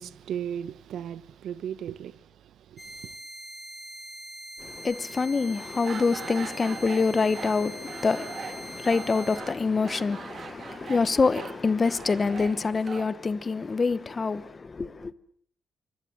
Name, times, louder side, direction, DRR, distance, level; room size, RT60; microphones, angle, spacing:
voice 1, 0.0-3.1, right 9 dB, 75° right, 1.0 m, -37 dB
sound 1, 2.8-9.4, right 1 dB, ahead, 7.9 m, -43 dB
voice 2, 4.6-15.1, left 4 dB, 30° left, 1.0 m, -26 dB
sound 2, 5.6-13.1, right 6 dB, 45° right, 2.0 m, -42 dB
26.0 x 24.5 x 7.6 m
cardioid pair, 135°, 0 cm